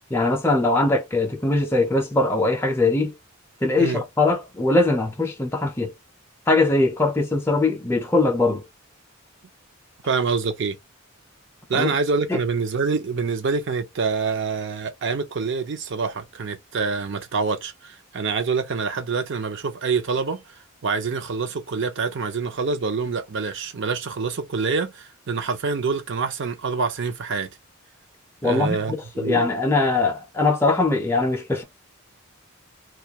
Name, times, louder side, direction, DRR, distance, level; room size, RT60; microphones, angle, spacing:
voice 1, 0.1-3.1 3.6-5.9 6.5-8.6 11.7-11.9 12.3-12.4 28.4-31.6, left 2 dB, 10° left, 0.4 m, -21 dB
voice 2, 10.0-10.8 11.7-20.5 20.8-27.5 28.4-29.5, right 4 dB, 60° right, 0.5 m, -26 dB
2.3 x 2.2 x 2.8 m
head